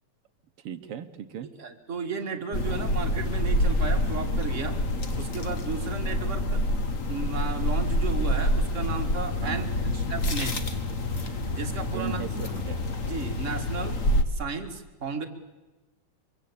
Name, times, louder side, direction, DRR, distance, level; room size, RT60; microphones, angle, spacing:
voice 1, 0.6-1.5 9.4-9.7 11.9-12.8, right 9 dB, 60° right, 10 dB, 1.6 m, -37 dB
voice 2, 1.6-4.8 5.2-6.6 7.1-9.6 9.9-10.6 11.5-12.2 13.1-15.3, right 5 dB, 30° right, 4 dB, 1.7 m, -34 dB
sound 1, 2.5-14.2, left 1 dB, 50° left, 0.9 m, -27 dB
24.5 x 24.0 x 8.7 m, 1.1 s
omnidirectional pair, 3.7 m